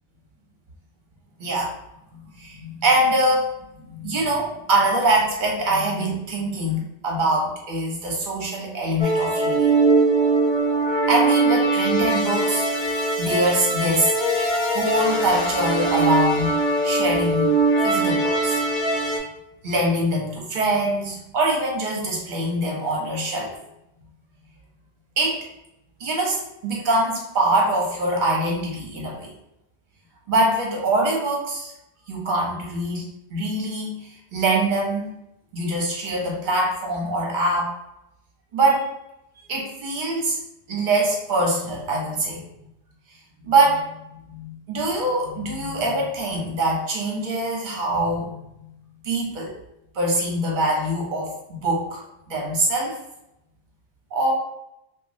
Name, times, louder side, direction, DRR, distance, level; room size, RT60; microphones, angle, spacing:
voice 1, 1.4-1.7 2.4-9.7 11.1-12.7 13.2-14.1 14.7-17.6 17.8-18.6 19.6-23.5 25.2-25.4 26.0-29.3 30.3-31.7 32.1-35.1 35.5-37.7 38.5-38.9 39.4-40.4 40.7-42.4 43.4-48.3 49.0-49.5 49.9-53.0 54.1-54.3, right 1 dB, 50° right, -1 dB, 0.9 m, -23 dB
sound 1, 9.0-19.2, right 2 dB, 40° left, 0.5 m, -21 dB
3.0 x 2.4 x 2.6 m, 0.83 s
omnidirectional pair, 1.1 m